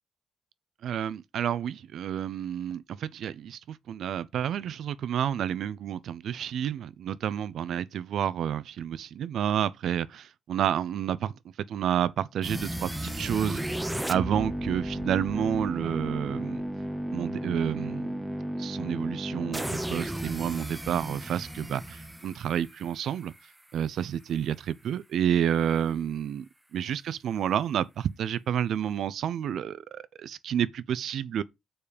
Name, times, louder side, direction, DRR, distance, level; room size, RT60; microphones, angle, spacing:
voice 1, 0.8-11.4 11.7-13.6 14.1-16.6 17.1-18.2 18.6-23.3 23.7-26.4 26.7-31.4, right 9 dB, 65° right, 0.5 m, -30 dB
sound 1, 12.4-23.4, right 1 dB, 5° right, 0.7 m, -34 dB
7.1 x 5.1 x 5.1 m
cardioid pair, 160°, 0 cm